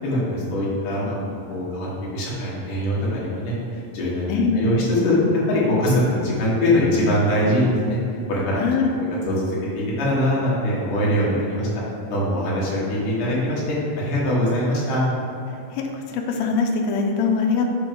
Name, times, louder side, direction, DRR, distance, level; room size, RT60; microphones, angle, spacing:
voice 1, 0.0-1.9 2.1-3.5 3.9-5.2 5.5-8.0 8.3-8.7 9.3-11.7 12.1-15.0, left 1 dB, 70° left, -6 dB, 2.9 m, -22 dB
voice 2, 4.3-4.7 8.6-8.9 15.7-17.7, left 4 dB, 85° left, 3 dB, 2.4 m, -22 dB
6.2 x 3.4 x 5.2 m, 2.7 s
omnidirectional pair, 4.0 m